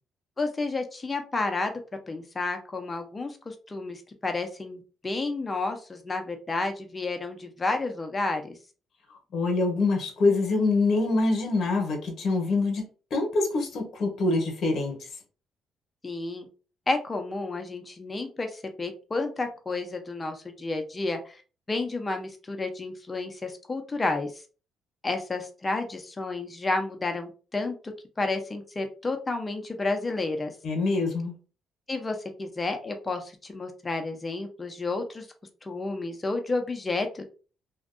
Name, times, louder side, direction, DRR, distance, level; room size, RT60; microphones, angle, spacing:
voice 1, 0.4-1.7 2.1-8.6 16.0-16.5 16.9-21.3 21.7-24.3 25.0-27.9 28.2-30.5 31.9-35.3 35.6-37.2, left 3 dB, 25° left, 5 dB, 0.5 m, -31 dB
voice 2, 9.3-12.9 13.1-15.0 30.6-31.3, left 3 dB, 60° left, 3 dB, 0.9 m, -25 dB
2.5 x 2.2 x 2.4 m, 0.36 s
cardioid pair, 85°, 0 cm